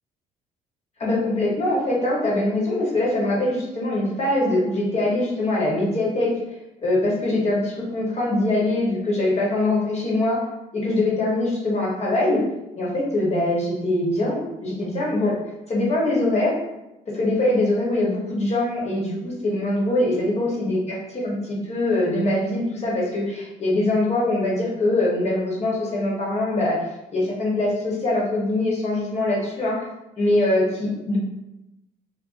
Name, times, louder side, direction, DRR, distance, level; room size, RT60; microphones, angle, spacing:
voice 1, 1.0-6.3 6.8-10.4 10.7-12.4 12.8-15.4 15.7-16.6 17.1-26.8 27.1-29.8 30.2-31.2, left 1 dB, 40° left, -4 dB, 1.0 m, -23 dB
2.5 x 2.2 x 2.4 m, 0.94 s
cardioid pair, 85°, 17 cm